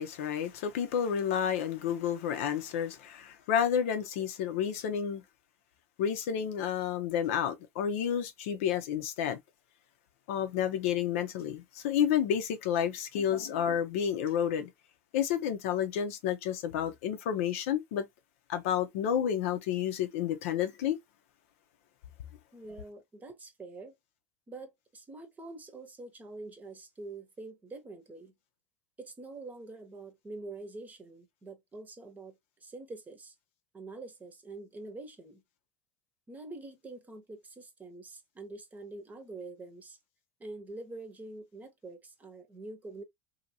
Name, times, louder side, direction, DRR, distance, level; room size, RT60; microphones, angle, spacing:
voice 1, 0.0-5.2 6.0-9.4 10.3-14.7 15.1-18.0 18.5-21.0, left 9 dB, 70° left, 0.7 m, -30 dB
voice 2, 22.5-23.9 24.5-28.3 29.0-32.4 32.6-33.3 33.7-35.4 36.3-40.0 40.4-43.0, right 2 dB, 20° right, 0.9 m, -45 dB
2.8 x 2.7 x 2.7 m
hypercardioid pair, 100°, 8 cm